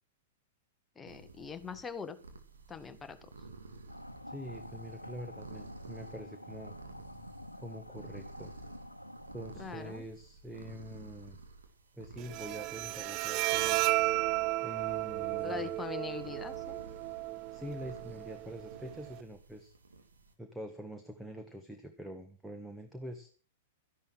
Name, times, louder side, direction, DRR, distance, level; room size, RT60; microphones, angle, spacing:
voice 1, 1.0-2.2 2.7-3.3 9.6-10.0 15.4-16.8, left 6 dB, 15° left, 9 dB, 1.4 m, -42 dB
sound 1, 1.1-20.3, right 3 dB, 70° right, 2.6 m, -52 dB
sound 2, 3.9-10.0, left 1 dB, 90° left, 1.1 m, -48 dB
voice 2, 4.3-6.7 7.6-8.5 9.3-11.4 11.9-13.9 14.6-15.7 17.5-19.7 20.4-23.3, equal, 5° right, 6 dB, 1.5 m, -45 dB
Bowed string instrument, 12.2-19.2, right 18 dB, 35° right, 0.6 m, -34 dB
13.0 x 11.0 x 6.2 m, 0.41 s
figure-of-eight pair, 100°, 0 cm